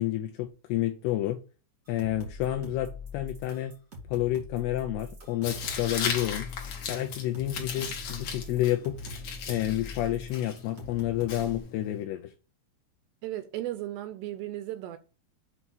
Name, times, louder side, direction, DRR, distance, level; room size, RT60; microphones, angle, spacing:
voice 1, 0.0-1.4 1.9-3.7 4.1-6.5 6.9-9.0 9.5-12.3, left 13 dB, 80° left, 2.4 m, -30 dB
sound 1, 1.8-11.6, left 2 dB, 45° right, 1.1 m, -44 dB
Tearing, 5.4-12.0, left 6 dB, 60° left, 2.0 m, -37 dB
voice 2, 13.2-15.0, right 14 dB, 85° right, 2.5 m, -35 dB
8.1 x 2.8 x 6.0 m
omnidirectional pair, 5.2 m